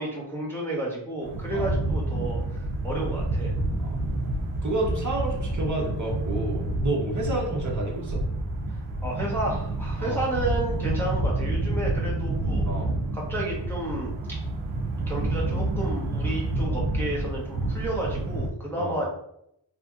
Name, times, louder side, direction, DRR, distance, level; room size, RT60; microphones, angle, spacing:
voice 1, 0.0-3.5 8.7-12.6 13.1-14.1 15.1-19.0, right 1 dB, 5° left, -4 dB, 0.6 m, -31 dB
sound 1, 1.2-18.5, right 2 dB, 75° right, 0.6 m, -29 dB
voice 2, 4.6-8.2 10.0-10.2 12.6-12.9 18.8-19.0, right 1 dB, 40° right, -2 dB, 0.6 m, -29 dB
2.8 x 2.6 x 2.3 m, 0.75 s
wide cardioid pair, 95°, 47 cm